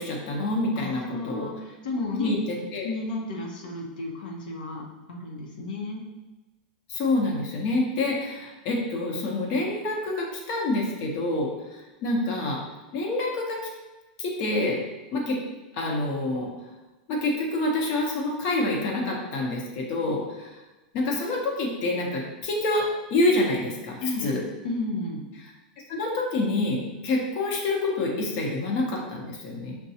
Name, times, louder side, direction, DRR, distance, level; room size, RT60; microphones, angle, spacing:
voice 1, 0.0-1.5 2.2-2.9 6.9-12.6 12.9-13.6 14.2-14.8 15.1-15.4 15.7-16.5 17.1-20.6 20.9-24.4 25.9-29.8, left 2 dB, 45° left, -1 dB, 0.9 m, -27 dB
voice 2, 0.7-2.3 2.8-6.0 24.0-25.2, left 2 dB, 85° left, -1 dB, 0.8 m, -33 dB
5.9 x 2.2 x 2.8 m, 1.1 s
supercardioid pair, 145°, 5 cm